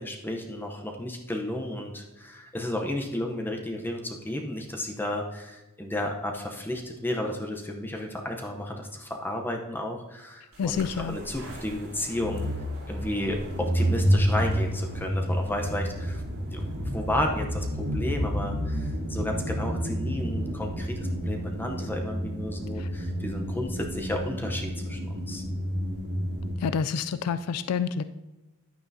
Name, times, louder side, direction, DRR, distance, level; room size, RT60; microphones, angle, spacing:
voice 1, 0.0-12.4 12.9-25.4, left 1 dB, 10° left, 2 dB, 0.7 m, -33 dB
voice 2, 10.6-11.2 22.8-22.9 26.6-28.0, left 6 dB, 85° left, 12 dB, 0.4 m, -28 dB
sound 1, 10.7-26.6, equal, 85° right, 3.0 m, -30 dB
10.5 x 9.1 x 2.7 m, 1.1 s
head